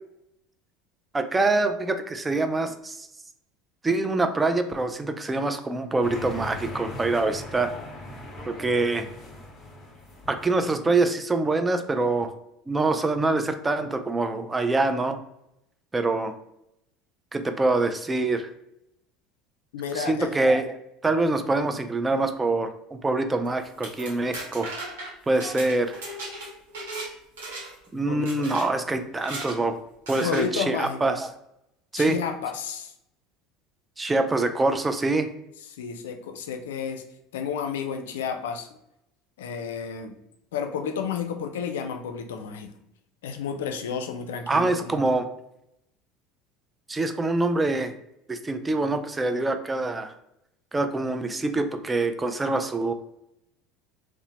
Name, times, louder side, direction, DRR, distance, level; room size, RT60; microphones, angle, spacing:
voice 1, 1.1-3.1 3.8-7.7 8.5-9.1 10.3-12.3 12.7-15.2 15.9-16.4 17.3-18.5 19.9-20.8 21.0-24.7 25.3-26.0 27.9-29.8 30.1-31.3 31.9-32.2 34.0-35.3 44.5-45.3 46.9-47.9 48.3-50.1 50.7-52.9, right 2 dB, 20° right, 8 dB, 0.3 m, -25 dB
sound 1, 6.0-10.8, left 1 dB, 35° left, 1.0 m, -39 dB
voice 2, 19.7-20.4 28.1-28.5 30.2-31.0 31.9-32.9 35.7-37.0 37.3-38.7 39.4-40.2 40.5-42.7 43.2-45.0, left 6 dB, 80° left, 6 dB, 0.3 m, -31 dB
sound 2, 23.6-27.1 27.4-27.9 28.3-28.7 29.2-29.6 30.1-30.5, right 2 dB, 80° right, 0.9 m, -37 dB
2.8 x 2.1 x 2.8 m, 0.82 s
hypercardioid pair, 80°, 0 cm